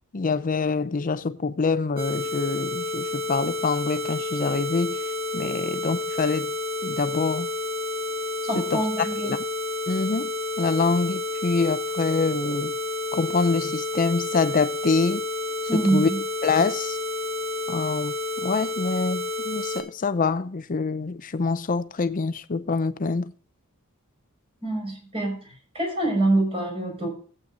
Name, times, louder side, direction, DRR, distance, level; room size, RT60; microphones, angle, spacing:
voice 1, 0.1-5.0 5.3-6.5 6.8-7.5 8.5-8.8 9.2-9.4 9.9-10.3 10.6-12.7 13.1-15.2 15.7-16.1 16.4-17.0 17.7-18.1 18.4-23.3, left 4 dB, 40° left, 0.5 m, -25 dB
sound 1, 2.0-19.8, left 2 dB, 45° right, 2.8 m, -30 dB
voice 2, 8.5-9.3 15.7-16.2 24.6-27.1, right 2 dB, 25° right, 5.2 m, -25 dB
16.5 x 8.8 x 2.6 m
head